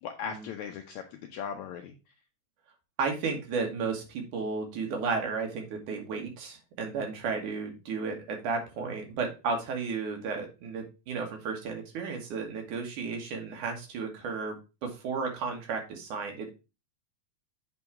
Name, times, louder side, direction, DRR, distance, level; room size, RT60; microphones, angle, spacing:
voice 1, 0.0-2.0, left 7 dB, 75° left, 4 dB, 1.8 m, -38 dB
voice 2, 3.0-14.6 14.8-16.5, right 4 dB, 70° right, 2 dB, 3.0 m, -33 dB
8.1 x 3.9 x 4.5 m, 0.29 s
omnidirectional pair, 3.8 m